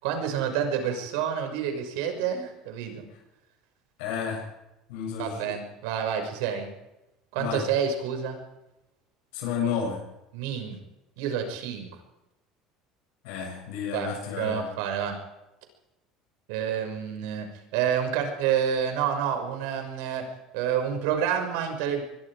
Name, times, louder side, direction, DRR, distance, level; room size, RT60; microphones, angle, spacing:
voice 1, 0.0-3.1 5.2-6.7 7.3-8.4 10.3-10.8 11.2-12.0 13.9-15.2 16.5-20.3 20.5-22.0, right 8 dB, 85° right, 5 dB, 6.1 m, -28 dB
voice 2, 4.0-4.5 4.9-5.6 7.4-7.7 9.3-10.0 13.2-14.7, left 6 dB, 85° left, -1 dB, 7.9 m, -31 dB
24.5 x 22.0 x 5.0 m, 0.94 s
cardioid pair, 125°, 0 cm